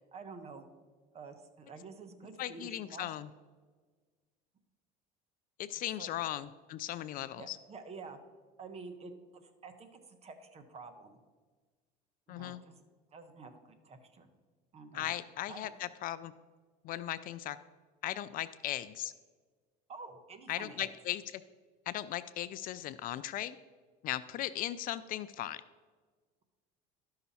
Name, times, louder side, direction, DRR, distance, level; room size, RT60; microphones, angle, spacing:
voice 1, 0.1-0.7 1.1-3.1 6.0-6.1 7.4-8.2 8.6-11.2 12.3-12.8 13.1-14.3 14.7-15.1 15.5-15.7 19.9-20.9, right 4 dB, 35° right, 8 dB, 1.1 m, -49 dB
voice 2, 2.4-3.3 5.6-7.6 12.3-12.6 14.9-16.3 16.8-17.6 18.0-19.1 20.5-21.2 21.9-23.6 24.0-25.6, left 13 dB, 50° left, 14 dB, 0.4 m, -37 dB
12.5 x 5.8 x 4.2 m, 1.5 s
supercardioid pair, 105°, 19 cm